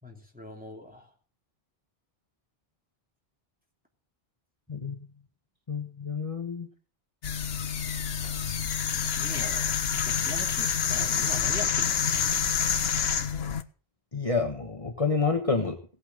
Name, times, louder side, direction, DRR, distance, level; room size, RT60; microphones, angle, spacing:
voice 1, 0.0-1.1 9.1-12.5, left 1 dB, 10° right, 1 dB, 3.0 m, -42 dB
voice 2, 5.7-6.7 14.1-15.8, left 4 dB, 35° left, 4 dB, 1.4 m, -28 dB
sound 1, 7.2-13.6, left 7 dB, 75° left, 1.2 m, -27 dB
17.5 x 8.6 x 6.5 m, 0.41 s
omnidirectional pair, 1.0 m